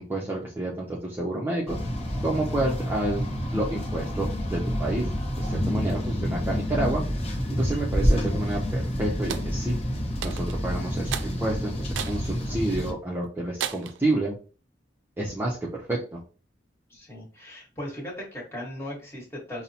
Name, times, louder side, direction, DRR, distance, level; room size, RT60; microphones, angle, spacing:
voice 1, 0.0-1.8 2.2-3.3 3.5-5.1 5.4-7.0 7.6-9.8 10.2-14.4 15.2-16.2, right 2 dB, 10° right, -4 dB, 0.5 m, -29 dB
sound 1, 1.7-12.9, equal, 35° left, 0.7 m, -28 dB
sound 2, 9.3-9.5 10.2-10.6 11.1-11.3 11.9-12.2 12.7-12.8 13.6-14.0, right 8 dB, 80° right, 0.4 m, -33 dB
voice 2, 16.9-19.6, left 1 dB, 15° left, -5 dB, 1.3 m, -38 dB
5.4 x 2.0 x 2.7 m, 0.37 s
head